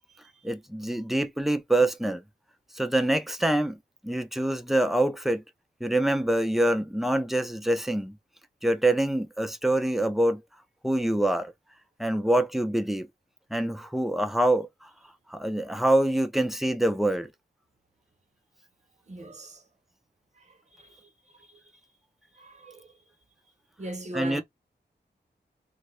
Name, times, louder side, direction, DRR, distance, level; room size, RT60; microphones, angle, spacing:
voice 1, 0.4-2.2 2.7-5.4 5.8-8.2 8.6-10.4 10.8-11.5 12.0-13.1 13.5-14.9 15.3-17.3 24.1-24.4, right 1 dB, ahead, 0.5 m, -25 dB
voice 2, 19.1-19.6 22.4-22.9 23.8-24.4, right 1 dB, 40° right, 0.7 m, -37 dB
3.1 x 2.1 x 3.1 m
wide cardioid pair, 95°, 18 cm